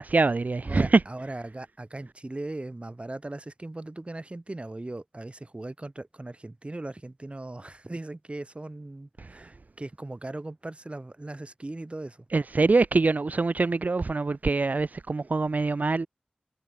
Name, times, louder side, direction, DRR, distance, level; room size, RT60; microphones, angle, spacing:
voice 1, 0.0-1.0 9.2-9.3 12.3-16.1, right 3 dB, 65° right, 0.5 m, -24 dB
voice 2, 0.6-12.2, right 2 dB, 40° right, 6.7 m, -38 dB
wide cardioid pair, 55°, 3 cm